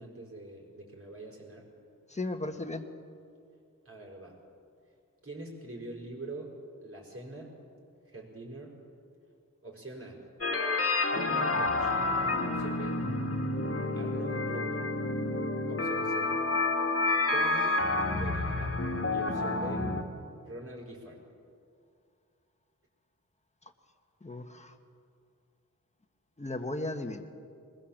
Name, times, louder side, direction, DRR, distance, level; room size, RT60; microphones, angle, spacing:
voice 1, 0.0-1.7 3.9-4.4 5.2-6.5 6.8-7.5 8.1-8.8 9.6-10.2 11.1-12.0 12.4-13.0 13.9-14.9 15.7-16.3 17.3-17.8 18.1-18.7 19.1-19.9 20.5-21.2, right 2 dB, 45° right, -2 dB, 5.4 m, -43 dB
voice 2, 2.1-2.8 24.2-24.7 26.4-27.2, left 2 dB, 20° left, 5 dB, 1.6 m, -35 dB
sound 1, 10.4-20.0, left 2 dB, 45° left, 2.0 m, -29 dB
22.0 x 21.5 x 7.4 m, 2.4 s
wide cardioid pair, 95°, 32 cm